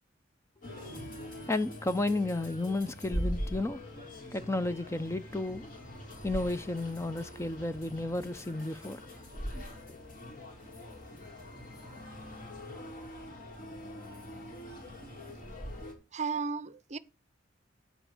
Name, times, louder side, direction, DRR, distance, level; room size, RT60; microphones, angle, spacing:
sound 1, 0.6-15.9, equal, 45° left, 2.9 m, -42 dB
voice 1, 1.5-3.8 4.3-5.7 6.2-9.0 9.9-10.0, left 2 dB, 15° left, 0.4 m, -32 dB
voice 2, 16.1-17.0, right 5 dB, 35° right, 0.6 m, -34 dB
8.9 x 7.6 x 4.9 m
head